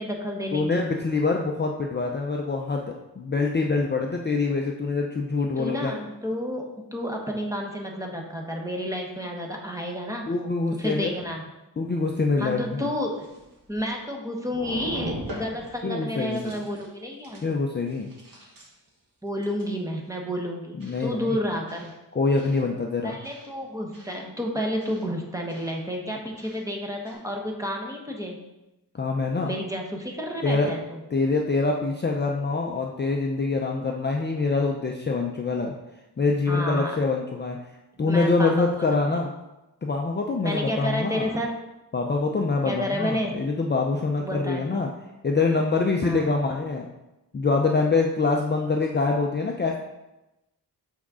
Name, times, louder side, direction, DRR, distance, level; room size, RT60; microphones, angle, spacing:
voice 1, 0.0-0.8 5.6-10.2 10.8-11.4 12.4-13.2 13.7-17.4 19.2-21.9 23.0-28.4 29.4-31.0 36.5-37.0 38.0-39.2 40.4-41.5 42.6-43.4 44.2-44.8 46.0-46.3, equal, 10° right, 0 dB, 0.9 m, -31 dB
voice 2, 0.5-2.8 3.2-5.9 10.3-11.2 11.8-12.9 15.8-16.6 17.4-18.1 20.7-21.4 22.1-23.2 28.9-29.6 30.4-30.7 31.1-35.7 36.2-37.6 38.0-39.3 39.8-41.4 41.9-44.9 45.2-46.9 47.3-49.8, left 3 dB, 25° left, 1 dB, 0.5 m, -25 dB
sound 1, 13.2-14.1 14.5-15.8 16.1-16.9 17.2-17.5 17.9-18.9 19.4-19.7 20.8-21.0 21.7-21.9 22.4-22.6 23.2-23.5 23.9-24.2 24.8-25.0 25.5-25.7 26.4-26.6 27.0-27.1, equal, 55° right, 1.9 m, -40 dB
6.2 x 3.6 x 6.1 m, 0.97 s
wide cardioid pair, 155°, 40 cm